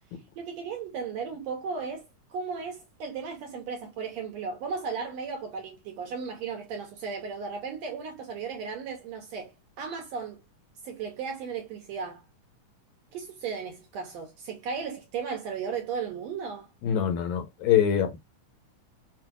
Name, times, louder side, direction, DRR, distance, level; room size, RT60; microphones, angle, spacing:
voice 1, 0.4-10.4 10.8-12.2 13.1-16.7, right 5 dB, 75° right, 1.7 m, -35 dB
voice 2, 16.8-18.2, left 9 dB, 75° left, 1.8 m, -24 dB
5.8 x 2.4 x 2.3 m
omnidirectional pair, 3.7 m